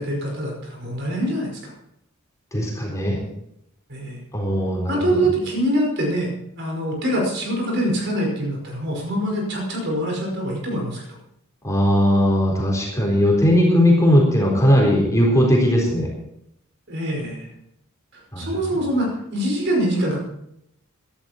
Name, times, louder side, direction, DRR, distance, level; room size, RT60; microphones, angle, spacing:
voice 1, 0.0-1.7 3.9-4.2 4.9-6.3 6.6-11.2 16.9-17.5 18.4-20.2, right 1 dB, 55° right, 0 dB, 5.2 m, -24 dB
voice 2, 2.5-3.2 4.3-5.2 11.6-16.1 18.3-18.6, equal, 15° left, -2 dB, 4.1 m, -18 dB
17.0 x 12.0 x 4.5 m, 0.79 s
head